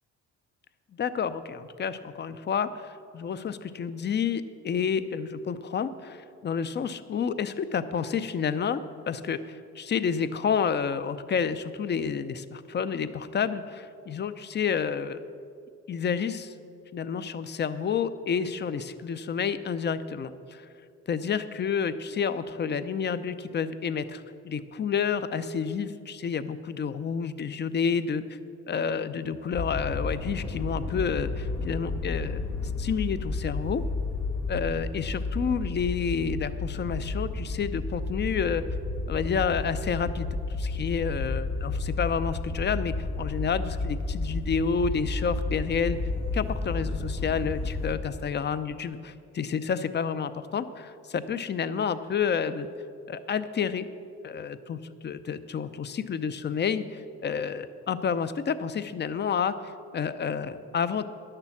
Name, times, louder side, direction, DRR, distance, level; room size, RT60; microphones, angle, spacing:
voice 1, 1.0-8.8 9.1-15.2 15.9-16.5 16.9-20.7 21.1-28.4 28.7-32.5 32.8-33.8 34.5-38.6 39.1-46.0 46.3-52.7 53.1-53.9 54.2-61.2, left 6 dB, 35° left, 13 dB, 0.6 m, -30 dB
sound 1, 29.5-48.0, left 3 dB, 90° left, 2.0 m, -32 dB
10.5 x 6.8 x 7.1 m, 2.5 s
cardioid pair, 90°, 30 cm